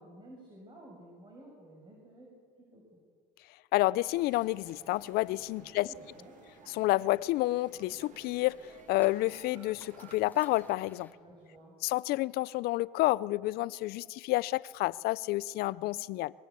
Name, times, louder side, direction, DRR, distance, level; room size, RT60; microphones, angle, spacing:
voice 1, 0.0-3.0 5.6-6.4 11.1-11.7, right 1 dB, 30° right, 6.5 m, -53 dB
voice 2, 3.7-5.9 6.7-11.1 11.8-16.3, left 18 dB, 70° left, 0.5 m, -29 dB
sound 1, 4.0-11.1, left 2 dB, 10° left, 2.5 m, -59 dB
sound 2, 4.1-10.7, right 7 dB, 50° right, 1.9 m, -57 dB
sound 3, 6.3-6.9 7.2-7.4 7.6-7.8 8.1-11.1 11.5-11.6 11.9-12.0, right 8 dB, 80° right, 2.5 m, -61 dB
22.5 x 21.5 x 8.4 m
supercardioid pair, 100°, 16 cm